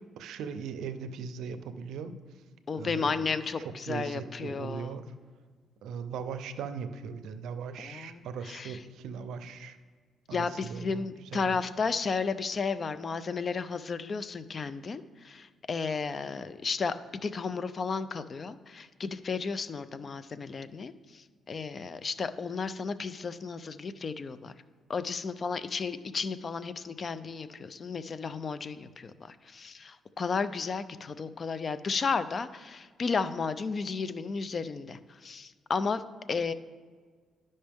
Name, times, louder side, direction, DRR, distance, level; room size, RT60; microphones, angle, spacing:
voice 1, 0.2-2.1 2.7-3.3 3.8-5.0 5.8-9.8 10.3-11.0 11.3-11.5, right 6 dB, 80° right, 10 dB, 0.5 m, -39 dB
voice 2, 2.7-5.0 7.8-8.8 10.3-24.5 24.9-36.0 36.3-36.5, left 5 dB, 40° left, 14 dB, 0.4 m, -33 dB
11.5 x 5.3 x 3.5 m, 1.5 s
cardioid pair, 90°, 0 cm